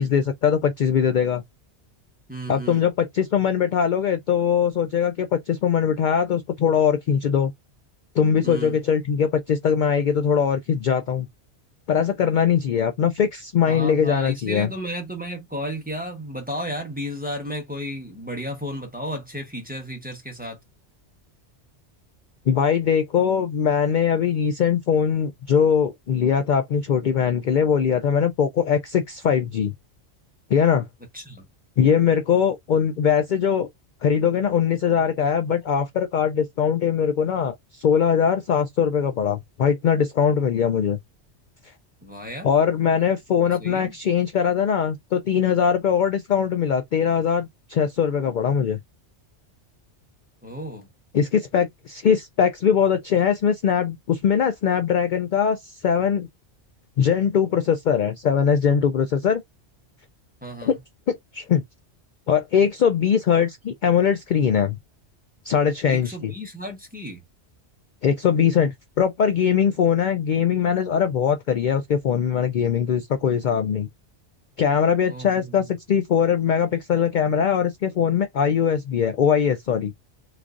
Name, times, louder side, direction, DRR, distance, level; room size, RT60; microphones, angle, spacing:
voice 1, 0.0-1.4 2.5-7.5 8.2-11.3 11.9-14.7 22.5-29.7 30.5-30.9 31.8-33.7 34.0-41.0 42.4-48.8 51.1-56.3 57.0-59.4 60.6-60.8 61.1-61.6 62.3-64.8 65.4-66.3 68.0-73.9 74.6-79.9, left 7 dB, 60° left, 0.5 m, -21 dB
voice 2, 2.3-2.8 8.4-8.8 13.6-20.6 31.1-31.5 42.0-42.5 43.6-43.9 50.4-50.9 60.4-60.7 65.9-67.2 75.1-75.7, equal, 10° right, 1.0 m, -33 dB
3.5 x 3.2 x 2.5 m
omnidirectional pair, 1.2 m